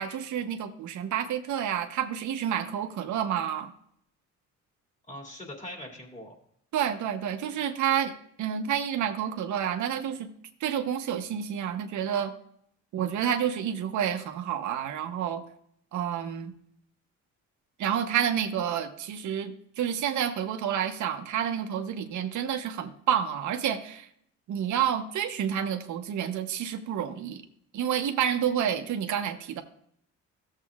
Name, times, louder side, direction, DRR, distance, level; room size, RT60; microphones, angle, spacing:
voice 1, 0.0-3.7 6.7-8.1 8.4-10.3 10.6-12.3 12.9-15.4 15.9-16.5 17.8-24.1 24.5-27.4 27.7-29.6, right 9 dB, 70° right, 6 dB, 0.8 m, -29 dB
voice 2, 5.1-6.3, left 1 dB, 25° left, 1 dB, 2.4 m, -41 dB
14.0 x 7.4 x 2.4 m, 0.69 s
cardioid pair, 90°, 30 cm